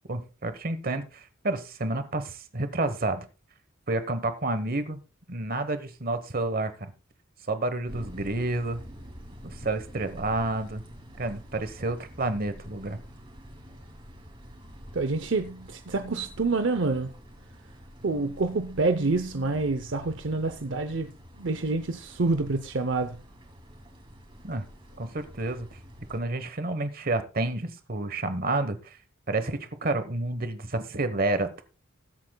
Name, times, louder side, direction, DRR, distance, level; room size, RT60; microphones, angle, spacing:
voice 1, 0.1-3.2 3.9-5.0 5.3-6.9 7.5-8.8 9.4-10.8 11.2-13.0 24.4-24.6 25.0-25.7 26.1-28.8 29.3-31.6, right 2 dB, 45° right, 1.1 m, -29 dB
sound 1, 7.9-26.2, equal, 25° right, 2.7 m, -47 dB
voice 2, 14.9-17.1 18.0-21.1 21.4-23.2, right 3 dB, 60° right, 0.7 m, -27 dB
20.0 x 8.4 x 2.3 m
head